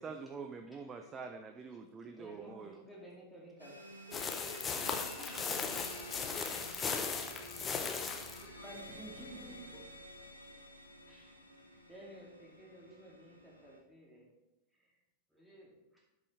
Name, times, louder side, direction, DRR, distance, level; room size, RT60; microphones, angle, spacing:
voice 1, 0.0-2.8, right 5 dB, 20° right, 6 dB, 0.5 m, -45 dB
voice 2, 2.1-3.7 5.2-5.4 6.4-7.3 7.7-7.8 8.3-9.8 11.0-11.3 11.6-14.3 14.7-14.9 15.3-15.7, right 1 dB, 5° left, -3 dB, 2.4 m, -53 dB
sound 1, 3.6-13.8, equal, 85° right, 1.2 m, -51 dB
sound 2, 4.1-8.4, left 5 dB, 20° left, 0.9 m, -37 dB
voice 3, 4.1-5.6 6.0-6.5 7.8-7.9, left 1 dB, 45° right, -4 dB, 3.3 m, -53 dB
13.0 x 5.3 x 3.2 m, 1.0 s
figure-of-eight pair, 90°, 0 cm